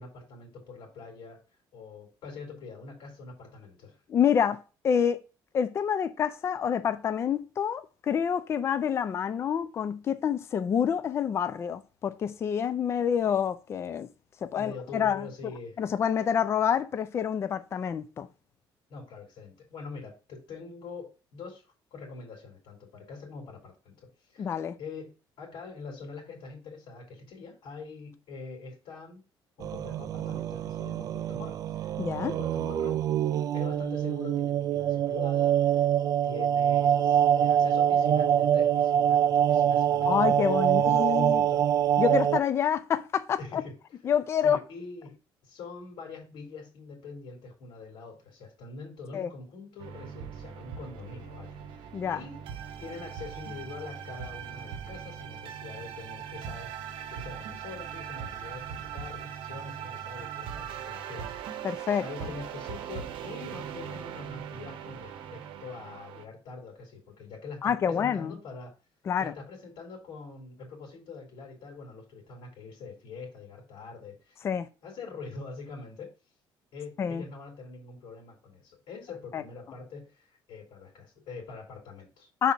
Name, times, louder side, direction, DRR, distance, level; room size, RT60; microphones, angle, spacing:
voice 1, 0.0-1.4 1.7-4.0 14.5-15.8 18.9-24.5 24.8-25.1 25.4-29.2 29.6-33.1 33.5-35.9 36.2-41.7 43.4-43.8 44.4-45.2 45.4-52.4 52.8-56.7 57.1-61.7 62.0-68.7 69.2-74.4 74.8-76.1 76.7-82.3, left 4 dB, 70° left, 2.8 m, -44 dB
voice 2, 4.1-5.2 5.5-14.1 14.4-15.3 15.8-18.3 24.4-24.7 32.0-32.3 40.1-41.4 42.0-43.6 44.0-44.6 49.1-49.3 51.9-52.2 61.6-62.0 67.6-68.4 69.1-69.3 74.4-74.7 77.0-77.2 79.3-79.4 82.4-82.5, left 8 dB, 30° left, 0.4 m, -27 dB
sound 1, 29.6-42.4, right 10 dB, 45° right, 0.3 m, -25 dB
sound 2, 49.8-66.2, right 8 dB, 75° right, 0.8 m, -40 dB
6.0 x 4.1 x 4.8 m
cardioid pair, 175°, 9 cm